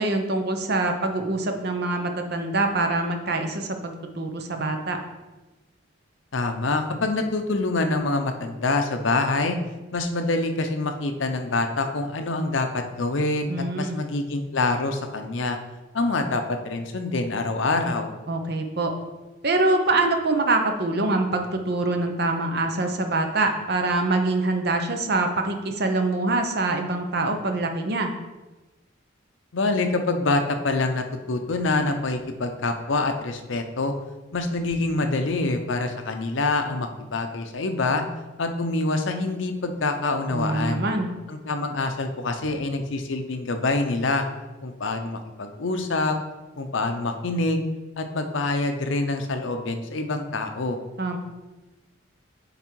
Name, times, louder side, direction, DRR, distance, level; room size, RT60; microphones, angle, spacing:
voice 1, 0.0-5.0 13.5-14.0 18.3-18.9 19.4-28.1 40.3-41.1 51.0-51.2, right 2 dB, 55° right, 5 dB, 0.8 m, -24 dB
voice 2, 6.3-9.6 9.9-15.6 15.9-18.1 29.5-33.9 34.3-38.1 38.4-40.9 41.3-44.3 44.6-46.2 46.6-47.6 48.0-50.8, left 2 dB, 75° left, 6 dB, 0.7 m, -26 dB
7.9 x 3.6 x 4.6 m, 1.1 s
head